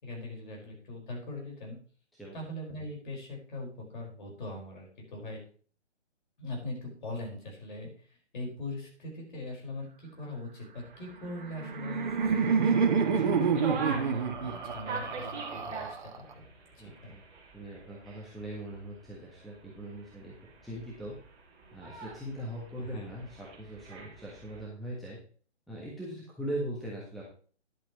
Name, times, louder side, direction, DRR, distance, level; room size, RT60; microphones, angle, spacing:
voice 1, 0.0-1.8 2.3-5.4 6.4-7.9 8.3-16.4 16.8-17.1 22.8-23.1, left 2 dB, 45° left, -1 dB, 5.1 m, -41 dB
sound 1, 10.8-24.7, right 4 dB, 20° right, 2.8 m, -45 dB
Laughter, 11.3-16.3, right 6 dB, 45° right, 1.5 m, -28 dB
voice 2, 16.8-17.2 17.5-20.3 20.6-21.1 21.7-25.2 25.7-27.3, right 1 dB, ahead, -6 dB, 1.3 m, -40 dB
12.0 x 11.0 x 3.1 m, 0.43 s
figure-of-eight pair, 140°, 35 cm